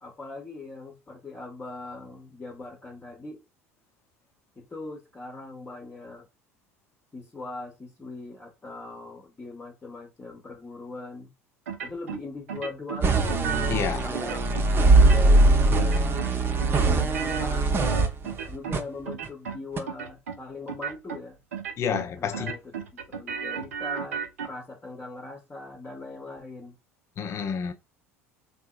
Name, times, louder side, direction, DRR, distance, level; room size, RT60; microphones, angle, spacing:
voice 1, 0.0-3.4 4.6-6.3 7.1-11.3 11.8-13.3 14.0-18.0 18.5-21.4 22.2-22.6 22.9-26.8, left 3 dB, 20° left, 0.9 m, -40 dB
sound 1, 11.7-12.2 12.5-13.8 14.1-14.7 15.0-15.5 15.8-16.3 16.6-18.8 19.1-19.6 19.9-20.4 20.7-21.2 21.5-22.1 22.3-24.5, right 7 dB, 75° right, 0.5 m, -34 dB
sound 2, 13.0-18.8 19.2-19.3 19.8-19.9, right 2 dB, 30° right, 0.7 m, -21 dB
voice 2, 13.7-14.1 21.8-22.5 27.2-27.7, left 7 dB, 35° left, 0.6 m, -29 dB
3.5 x 2.7 x 2.3 m
figure-of-eight pair, 70°, 8 cm